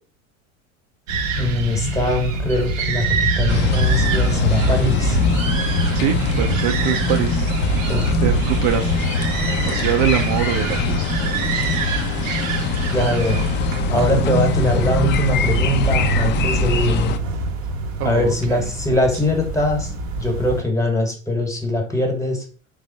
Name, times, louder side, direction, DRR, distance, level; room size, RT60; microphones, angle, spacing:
sound 1, 1.1-20.6, right 2 dB, 75° right, 0.8 m, -24 dB
voice 1, 1.4-5.2 7.9-8.2 12.9-13.4 13.9-17.2 18.0-19.9 20.2-22.4, left 1 dB, 10° left, 2 dB, 1.0 m, -22 dB
sound 2, 3.5-17.2, left 5 dB, 30° left, 0.3 m, -23 dB
voice 2, 5.9-7.5 8.2-9.1 9.6-11.6 18.0-18.3, right 11 dB, 50° right, 4 dB, 0.5 m, -24 dB
3.3 x 2.0 x 3.9 m, 0.40 s
hypercardioid pair, 80°, 40 cm